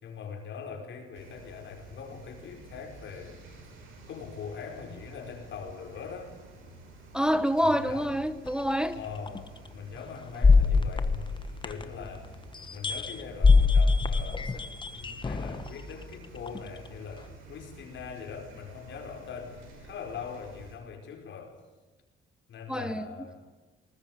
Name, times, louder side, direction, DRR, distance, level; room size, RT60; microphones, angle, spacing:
voice 1, 0.0-3.4 4.1-6.3 7.6-8.1 8.9-11.3 11.6-12.4 12.7-21.6 22.5-23.4, left 6 dB, 70° left, 5.1 m, -42 dB
sound 1, 1.1-20.7, right 2 dB, 90° right, 6.1 m, -50 dB
voice 2, 7.1-9.0 22.7-23.1, equal, 5° right, 0.9 m, -27 dB
sound 2, 8.5-8.6 9.3-9.4 10.4-12.1 12.5-15.7 16.5-16.6, left 4 dB, 25° left, 1.2 m, -23 dB
19.5 x 19.5 x 8.1 m
cardioid pair, 90°, 20 cm